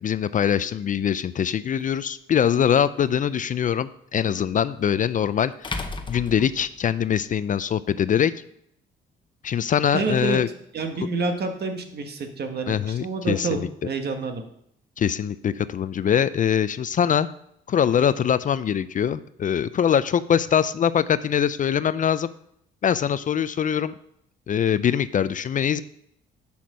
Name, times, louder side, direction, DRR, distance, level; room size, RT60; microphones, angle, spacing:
voice 1, 0.0-8.3 9.4-10.5 12.7-13.7 15.0-17.3 17.7-22.3 22.8-24.0 24.5-25.8, left 8 dB, 40° left, 15 dB, 0.4 m, -23 dB
sound 1, 1.8-1.9 4.5-4.6 5.6-7.2, left 3 dB, 25° left, 1.0 m, -34 dB
voice 2, 9.9-10.4 10.7-14.4, right 3 dB, 55° right, 5 dB, 1.5 m, -28 dB
7.1 x 5.9 x 6.2 m, 0.72 s
cardioid pair, 90°, 20 cm